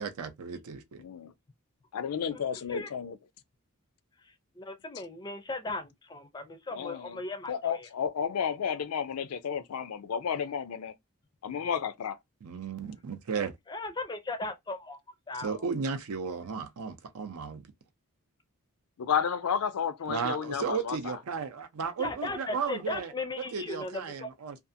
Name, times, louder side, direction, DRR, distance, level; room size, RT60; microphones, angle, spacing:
voice 1, 0.0-1.0 12.4-13.6 15.4-17.7 20.1-24.6, right 5 dB, 80° right, 0.5 m, -34 dB
voice 2, 1.0-1.3 1.9-3.2 6.7-7.2 7.5-10.9 11.4-12.2 19.0-21.2, left 7 dB, 80° left, 0.4 m, -32 dB
voice 3, 4.6-7.9 13.7-15.0 15.3-15.6 22.0-24.3, left 2 dB, 20° left, 0.4 m, -37 dB
2.6 x 2.4 x 2.5 m
head